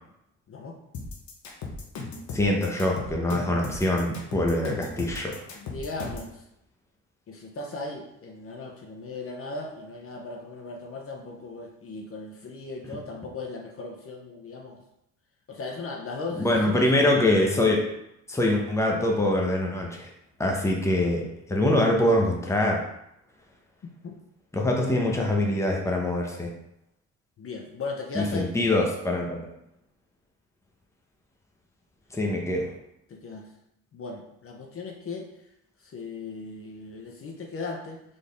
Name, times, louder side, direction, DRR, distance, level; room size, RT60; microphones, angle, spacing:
voice 1, 0.5-0.8 5.5-6.5 7.3-14.8 15.5-17.2 23.8-24.2 27.4-28.5 33.1-33.5 33.9-35.5 35.8-38.0, left 3 dB, 45° left, 1 dB, 0.8 m, -37 dB
sound 1, 0.9-6.3, left 3 dB, 70° left, 1.0 m, -37 dB
voice 2, 2.3-5.4 16.4-17.8 18.3-20.1 20.4-21.2 21.5-22.8 24.5-26.5 28.1-29.4 32.1-32.7, left 1 dB, 10° left, 0 dB, 0.9 m, -24 dB
4.1 x 3.5 x 3.4 m, 0.81 s
cardioid pair, 90°, 30 cm